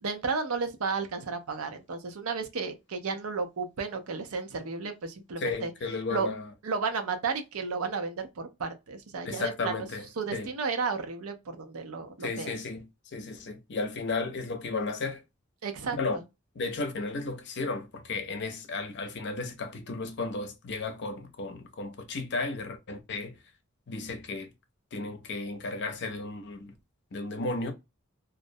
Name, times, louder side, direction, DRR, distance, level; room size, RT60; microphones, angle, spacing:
voice 1, 0.0-5.7 6.1-6.3 6.6-9.9 10.2-12.6 15.6-16.2, right 4 dB, 90° right, 0.6 m, -33 dB
voice 2, 5.4-6.5 9.2-10.5 12.2-15.2 15.9-16.2 16.5-23.4 23.9-24.5 24.9-26.7 27.1-27.7, left 3 dB, 55° left, 0.5 m, -34 dB
2.4 x 2.1 x 2.6 m
head